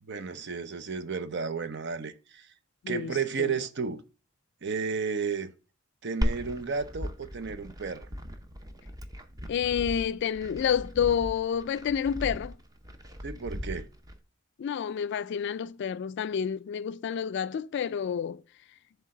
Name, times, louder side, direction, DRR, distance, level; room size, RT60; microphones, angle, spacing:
voice 1, 0.0-2.5 2.9-4.0 4.6-5.5 6.0-8.1 13.2-13.9, right 5 dB, 60° right, 0.7 m, -33 dB
voice 2, 2.8-3.5 9.5-12.6 14.6-18.4, left 8 dB, 60° left, 0.3 m, -29 dB
Glass, 6.2-14.2, equal, 20° right, 0.7 m, -36 dB
7.7 x 3.4 x 6.4 m
head